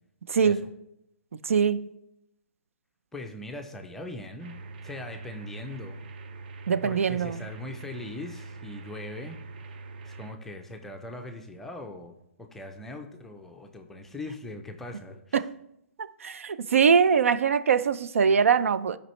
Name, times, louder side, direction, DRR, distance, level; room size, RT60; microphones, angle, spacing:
voice 1, 0.3-0.6 1.4-1.8 6.7-7.4 15.3-15.5 16.2-19.0, right 6 dB, 75° right, 0.5 m, -22 dB
voice 2, 3.1-4.6 4.8-6.0 6.8-9.4 10.1-15.4, left 2 dB, 5° left, 0.4 m, -40 dB
sound 1, 4.4-10.3, right 3 dB, 45° right, 0.7 m, -43 dB
12.0 x 5.2 x 3.2 m
hypercardioid pair, 165°, 7 cm